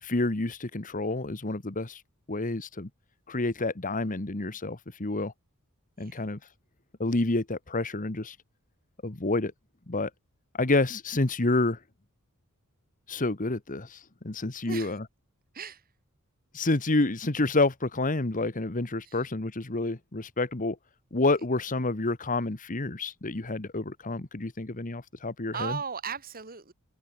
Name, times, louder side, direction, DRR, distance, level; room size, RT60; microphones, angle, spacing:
voice 1, 0.0-2.0 2.3-2.9 3.3-5.3 6.0-6.4 7.0-8.4 9.0-9.5 9.9-10.1 10.5-11.8 13.1-15.0 16.5-20.8 21.1-25.8, left 2 dB, 35° left, 1.4 m, -29 dB
voice 2, 6.0-6.4 14.6-15.0 15.5-15.8 19.0-19.2 25.5-26.7, right 6 dB, 40° right, 2.9 m, -37 dB
head